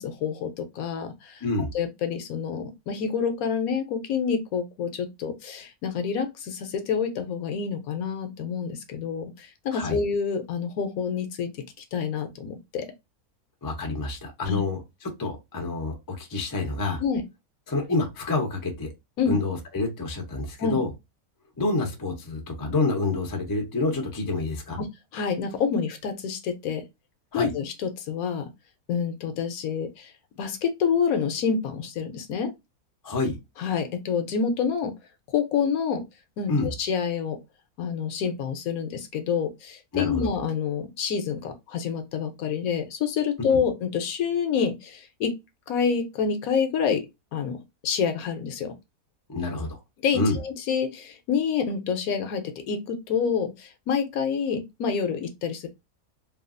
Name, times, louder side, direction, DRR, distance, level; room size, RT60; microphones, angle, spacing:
voice 1, 0.0-1.4 1.7-11.6 11.9-12.9 14.5-14.6 17.0-17.2 19.2-19.4 20.6-20.8 24.8-24.9 25.1-26.8 27.3-28.5 28.9-30.1 30.4-32.5 33.6-34.9 35.3-36.0 36.4-37.4 37.8-45.3 45.7-47.1 47.3-48.7 50.0-55.7, left 6 dB, 70° left, 1.0 m, -27 dB
voice 2, 13.6-14.8 15.2-17.0 17.7-18.9 19.3-20.9 21.6-24.8 27.3-27.5 33.0-33.4 36.5-36.7 39.9-40.3 49.3-49.7 50.1-50.4, left 3 dB, 30° left, 0.3 m, -27 dB
3.2 x 2.4 x 2.4 m
omnidirectional pair, 1.7 m